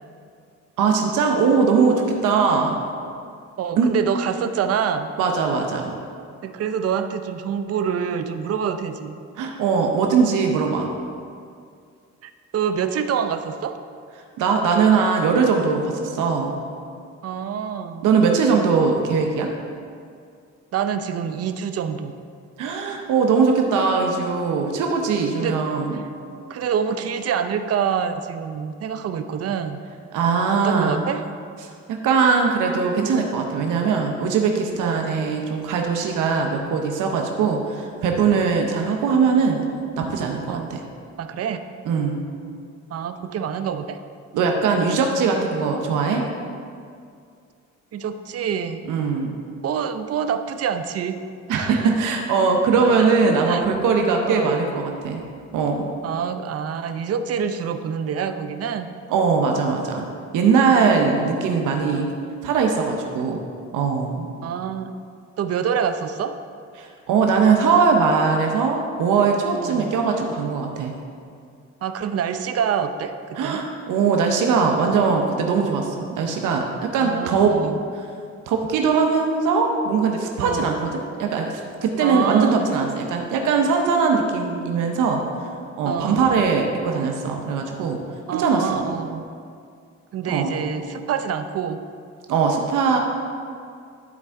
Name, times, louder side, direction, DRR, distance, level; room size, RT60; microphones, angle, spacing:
voice 1, 0.8-2.8 3.8-3.9 5.2-5.9 9.4-10.9 14.4-16.6 18.0-19.5 22.6-26.0 30.1-31.0 31.9-39.6 40.0-40.8 41.9-42.2 44.3-46.2 48.9-49.3 51.5-55.2 55.5-55.9 59.1-60.1 60.3-62.1 62.4-63.4 63.7-64.3 66.8-70.9 73.4-77.5 78.5-85.2 85.8-88.0 88.3-88.8 90.3-90.5 92.3-93.0, right 5 dB, 85° right, 2 dB, 0.8 m, -20 dB
voice 2, 3.6-5.1 6.4-9.2 12.2-13.8 17.2-18.0 20.7-22.1 25.4-25.6 25.9-26.0 26.5-29.8 30.5-31.2 34.8-35.2 40.5-40.8 41.2-41.6 42.9-44.0 47.9-48.9 49.6-51.2 51.5-52.0 53.0-53.7 54.2-54.5 56.0-58.9 61.1-61.5 64.4-64.9 65.4-66.4 69.6-70.0 71.8-73.6 77.0-77.8 80.4-80.8 82.0-82.7 85.9-86.3 88.3-89.2 90.1-91.8, right 7 dB, 55° right, 10 dB, 0.5 m, -26 dB
12.0 x 4.4 x 3.6 m, 2.3 s
cardioid pair, 90°, 30 cm